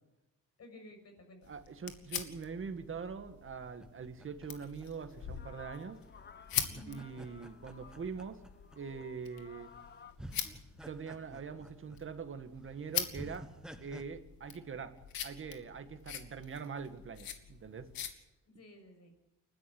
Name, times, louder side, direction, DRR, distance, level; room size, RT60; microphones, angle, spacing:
voice 1, 0.6-1.5 6.7-7.1 18.5-19.1, left 2 dB, 45° left, 6 dB, 6.8 m, -54 dB
sound 1, 1.4-18.1, left 9 dB, 90° left, 2.4 m, -44 dB
voice 2, 1.5-6.0 6.9-8.4 8.8-9.7 10.8-13.5 13.8-15.0 15.2-17.9, right 5 dB, 35° right, 8 dB, 1.9 m, -43 dB
sound 2, 3.6-5.6 6.5-9.0 9.7-9.8 10.2-12.2 12.6-12.7 13.1-14.0, right 1 dB, ahead, 1.2 m, -50 dB
sound 3, 5.1-10.1, left 6 dB, 30° left, 1.1 m, -56 dB
29.5 x 12.5 x 8.0 m, 0.90 s
cardioid pair, 150°, 34 cm